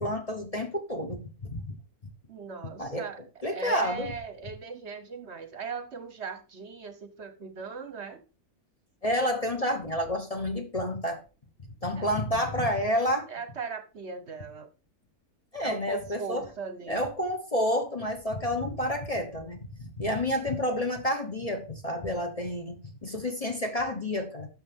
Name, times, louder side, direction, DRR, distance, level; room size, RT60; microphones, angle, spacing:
voice 1, 0.0-1.8 2.8-3.0 3.4-4.1 9.0-11.2 11.8-13.3 15.5-16.4 16.9-24.5, left 1 dB, 30° left, 1.0 m, -29 dB
voice 2, 2.3-8.2 11.9-12.1 13.3-14.7 15.6-17.1, right 5 dB, 55° right, 1.0 m, -39 dB
11.5 x 6.5 x 3.5 m
omnidirectional pair, 1.5 m